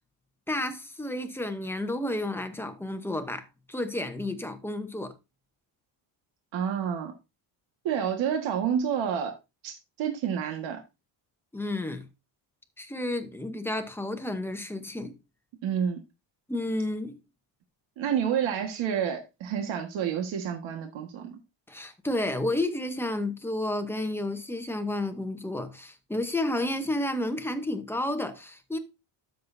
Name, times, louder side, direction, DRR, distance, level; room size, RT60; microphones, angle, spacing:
voice 1, 0.5-5.1 11.5-12.1 12.8-15.2 16.5-17.2 21.7-28.8, left 1 dB, 5° left, 0.7 m, -31 dB
voice 2, 6.5-7.1 7.8-9.3 9.6-10.8 15.6-16.0 18.0-21.4, right 8 dB, 75° right, 1.6 m, -29 dB
12.5 x 6.8 x 2.6 m
cardioid pair, 170°, 46 cm